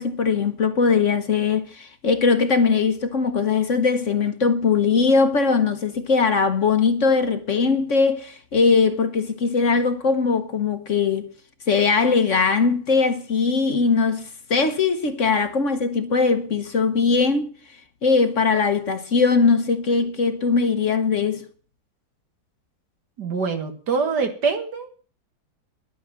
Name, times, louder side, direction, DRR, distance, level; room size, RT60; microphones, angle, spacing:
voice 1, 0.0-11.3 11.7-17.5 18.0-21.5, left 4 dB, 50° left, 1.3 m, -20 dB
voice 2, 23.2-24.9, right 5 dB, 75° right, 2.3 m, -24 dB
11.0 x 8.6 x 7.4 m
omnidirectional pair, 1.8 m